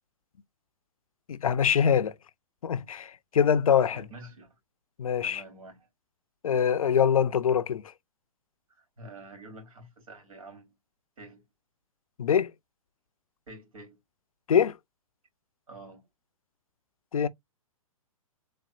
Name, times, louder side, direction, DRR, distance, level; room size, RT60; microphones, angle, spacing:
voice 1, 1.3-2.1 2.6-4.0 5.0-5.4 6.4-7.9 12.2-12.5 14.5-14.8 17.1-17.3, left 8 dB, 75° left, 0.5 m, -24 dB
voice 2, 3.9-4.6 5.2-5.9 8.7-10.7 11.2-11.4 13.5-14.0 15.7-16.1, right 2 dB, 70° right, 3.3 m, -48 dB
4.2 x 3.5 x 2.3 m
hypercardioid pair, 125°, 18 cm